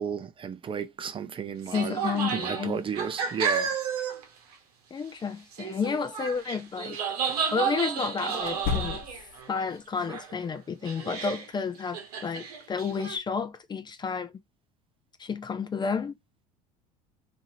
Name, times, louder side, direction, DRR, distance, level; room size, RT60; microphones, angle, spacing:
voice 1, 0.0-2.0 2.3-3.7, right 7 dB, 30° right, 0.5 m, -33 dB
sound 1, 1.6-4.3 4.5-4.6 5.5-9.7 10.1-10.5 10.8-11.5 11.8-13.2, right 7 dB, 85° right, 0.9 m, -32 dB
voice 2, 1.7-2.8 4.9-7.0 7.5-9.0 9.5-14.3 15.2-16.2, left 5 dB, 25° left, 0.5 m, -31 dB
sound 2, 6.2-6.4 8.4-9.4, left 7 dB, 50° left, 1.0 m, -32 dB
2.8 x 2.7 x 2.7 m
hypercardioid pair, 90°, 19 cm